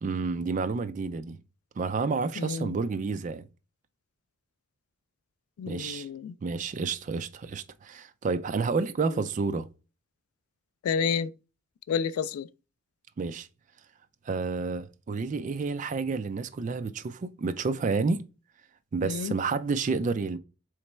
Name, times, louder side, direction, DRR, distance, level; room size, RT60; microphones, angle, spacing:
voice 1, 0.0-1.4 1.8-3.5 5.7-6.1 6.4-9.7 13.2-13.5 14.3-18.2 18.9-20.4, right 4 dB, 35° right, 0.3 m, -30 dB
voice 2, 2.4-2.8 5.6-6.4 10.8-11.3 11.9-12.5 19.0-19.3, left 6 dB, 90° left, 0.3 m, -30 dB
4.0 x 3.2 x 3.1 m
head